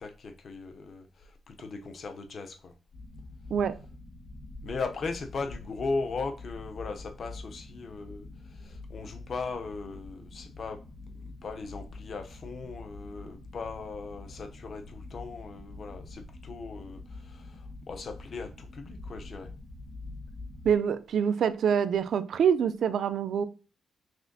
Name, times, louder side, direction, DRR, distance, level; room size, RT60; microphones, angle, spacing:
voice 1, 0.0-2.7 4.6-10.8 11.1-19.5, left 4 dB, 50° left, 0.5 m, -38 dB
sound 1, 2.9-20.8, left 2 dB, 75° left, 0.8 m, -45 dB
voice 2, 20.6-23.4, right 7 dB, 75° right, 0.3 m, -25 dB
6.0 x 2.5 x 2.6 m
cardioid pair, 120°, 0 cm